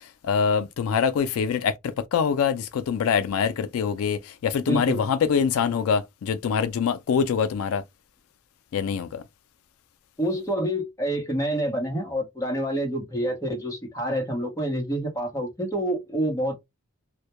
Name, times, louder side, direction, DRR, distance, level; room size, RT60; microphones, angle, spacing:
voice 1, 0.2-7.8 8.7-9.2, left 6 dB, 85° left, 0.3 m, -24 dB
voice 2, 4.6-5.1 10.2-16.6, right 1 dB, 15° left, 0.8 m, -27 dB
2.2 x 2.1 x 2.8 m
head